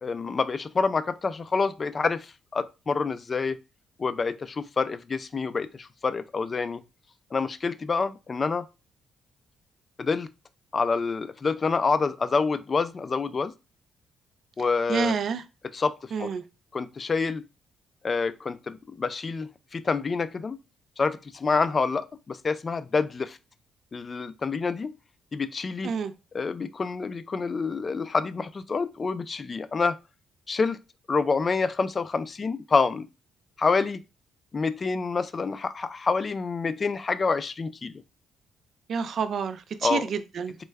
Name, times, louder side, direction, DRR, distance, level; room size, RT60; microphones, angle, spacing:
voice 1, 0.0-3.6 4.0-6.8 7.3-8.7 10.0-10.3 10.7-13.5 14.6-15.2 15.7-16.3 16.7-17.4 18.0-20.6 21.0-23.4 23.9-24.9 25.3-25.9 26.3-30.0 30.5-30.8 31.1-33.1 33.6-34.0 34.5-38.0 39.8-40.0, left 4 dB, 35° left, 0.3 m, -27 dB
voice 2, 14.9-15.4 16.1-16.4 25.8-26.1 38.9-40.5, right 6 dB, 60° right, 0.4 m, -28 dB
3.4 x 2.2 x 3.2 m
cardioid pair, 90°, 0 cm